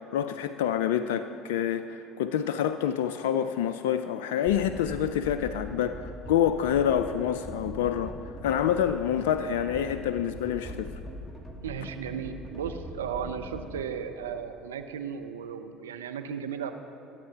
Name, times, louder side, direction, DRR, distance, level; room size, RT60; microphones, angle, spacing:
voice 1, 0.0-8.2 8.4-10.9, left 9 dB, 75° left, 10 dB, 0.3 m, -27 dB
sound 1, 4.5-13.8, equal, ahead, 1.6 m, -42 dB
voice 2, 11.6-16.7, right 7 dB, 85° right, 7 dB, 0.6 m, -35 dB
20.5 x 8.7 x 2.9 m, 2.8 s
hypercardioid pair, 70°, 0 cm